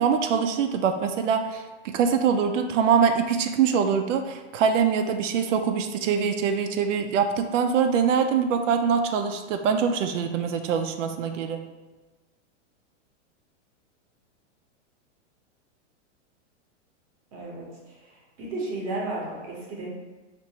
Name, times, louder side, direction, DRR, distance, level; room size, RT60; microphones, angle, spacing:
voice 1, 0.0-11.6, right 6 dB, 85° right, 6 dB, 0.5 m, -24 dB
voice 2, 17.3-19.9, right 2 dB, 25° right, -3 dB, 0.7 m, -34 dB
4.5 x 2.5 x 2.8 m, 1.2 s
supercardioid pair, 170°, 37 cm